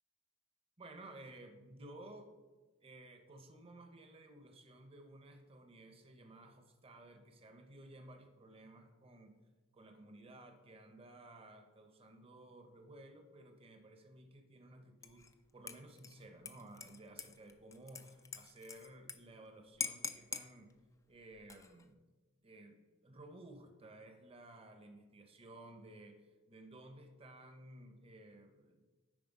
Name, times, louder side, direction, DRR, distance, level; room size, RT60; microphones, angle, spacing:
voice 1, 0.8-2.3 2.8-9.4 9.7-15.3 15.5-20.7 21.1-22.0 22.4-28.8, right 1 dB, 25° right, 5 dB, 0.7 m, -55 dB
Dishes pots and pans / Liquid, 15.0-15.3 15.7-19.2 19.4-19.5 19.8-20.5 21.3-21.8, left 5 dB, 15° left, 0.3 m, -44 dB
9.7 x 4.3 x 5.3 m, 1.2 s
head